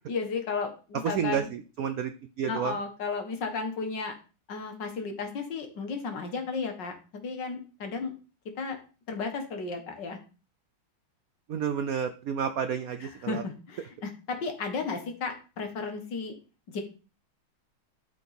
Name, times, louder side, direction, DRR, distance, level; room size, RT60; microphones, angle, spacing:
voice 1, 0.1-1.5 2.5-4.1 4.5-8.1 8.6-8.8 9.1-10.2 13.0-16.3 16.7-16.8, left 4 dB, 60° left, 5 dB, 2.0 m, -34 dB
voice 2, 1.0-2.1 2.4-2.7 11.5-13.4, right 7 dB, 80° right, 9 dB, 0.8 m, -30 dB
11.5 x 5.0 x 4.2 m, 0.34 s
omnidirectional pair, 2.3 m